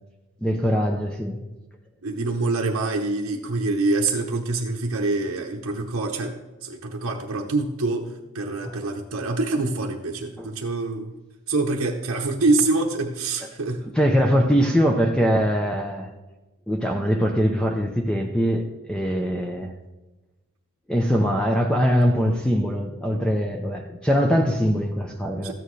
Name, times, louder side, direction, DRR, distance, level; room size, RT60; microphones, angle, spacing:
voice 1, 0.4-1.4 8.6-8.8 10.4-10.5 13.9-16.1 16.7-19.7 20.9-25.5, equal, 5° left, 0.6 m, -22 dB
voice 2, 2.0-6.3 6.6-8.1 8.3-11.1 11.5-13.9 25.4-25.5, right 3 dB, 80° right, 0.9 m, -25 dB
14.0 x 9.1 x 3.2 m
head